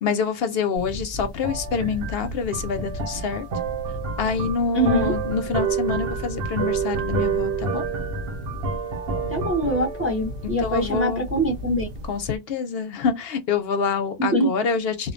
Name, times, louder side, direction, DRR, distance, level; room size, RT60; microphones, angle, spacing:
voice 1, 0.0-3.5 4.2-7.8 10.6-11.3 12.1-15.1, left 5 dB, 70° left, 0.8 m, -26 dB
sound 1, 0.8-12.4, right 4 dB, 65° right, 0.8 m, -29 dB
voice 2, 4.7-5.1 9.3-11.9 14.2-14.5, right 1 dB, 20° right, 0.4 m, -23 dB
2.3 x 2.1 x 2.5 m
omnidirectional pair, 1.1 m